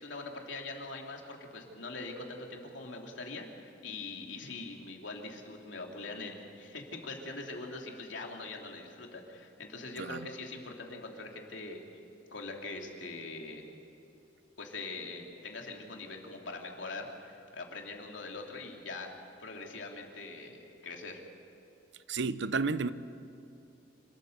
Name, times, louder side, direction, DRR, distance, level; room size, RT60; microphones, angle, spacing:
voice 1, 0.0-11.8 12.3-13.6 14.6-19.1 19.4-21.2, left 3 dB, 80° left, 1 dB, 3.0 m, -42 dB
voice 2, 22.1-22.9, right 4 dB, 70° right, 14 dB, 0.8 m, -31 dB
27.0 x 14.0 x 8.1 m, 2.9 s
head